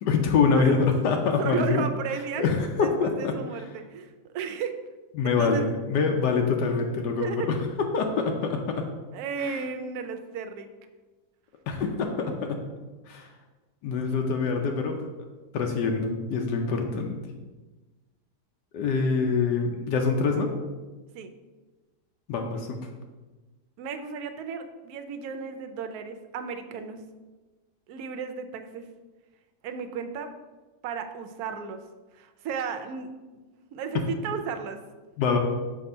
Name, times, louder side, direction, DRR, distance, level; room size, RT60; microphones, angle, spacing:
voice 1, 0.0-1.8 2.4-3.4 5.1-7.6 7.9-8.9 9.4-9.6 11.7-12.6 13.1-13.3 13.8-15.0 15.5-17.2 18.7-20.5 22.3-22.8 33.9-34.0 35.2-35.4, left 5 dB, 80° left, 3 dB, 1.2 m, -25 dB
voice 2, 1.4-2.4 2.8-4.8 5.2-5.7 7.2-7.5 9.1-10.7 21.1-21.3 23.8-27.0 27.9-28.8 29.6-30.3 30.8-31.8 32.1-33.1 33.7-34.8, right 6 dB, 70° right, 7 dB, 1.0 m, -34 dB
6.6 x 2.8 x 5.3 m, 1.2 s
omnidirectional pair, 1.8 m